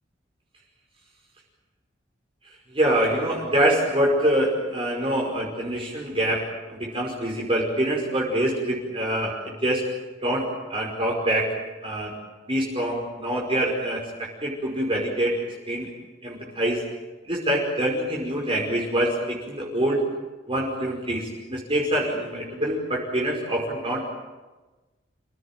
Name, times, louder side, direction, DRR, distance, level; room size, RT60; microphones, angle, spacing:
voice 1, 2.7-9.9 10.2-11.6 11.8-12.1 12.5-15.9 16.2-16.8 17.3-20.0 20.5-24.1, right 1 dB, 30° right, -2 dB, 5.4 m, -25 dB
29.0 x 17.0 x 9.1 m, 1.2 s
head